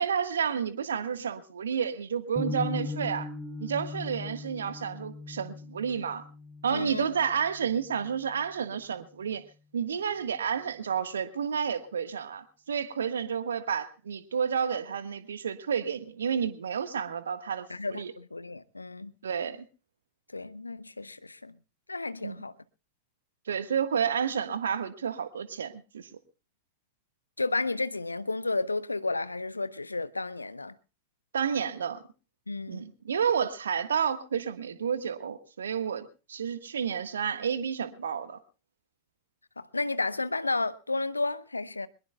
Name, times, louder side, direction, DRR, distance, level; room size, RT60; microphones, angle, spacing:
voice 1, 0.0-3.3 3.6-6.2 6.6-9.4 9.7-18.1 19.2-19.7 22.2-22.4 23.5-26.1 31.3-32.0 32.7-38.4, right 7 dB, 70° right, 1.6 m, -30 dB
sound 1, 2.4-8.4, left 3 dB, 5° right, 2.8 m, -39 dB
voice 2, 6.7-7.1 17.7-19.1 20.3-21.5 21.9-22.5 27.4-30.7 32.5-32.8 39.6-41.9, left 3 dB, 80° left, 0.8 m, -32 dB
23.5 x 21.0 x 2.3 m
figure-of-eight pair, 90°, 0 cm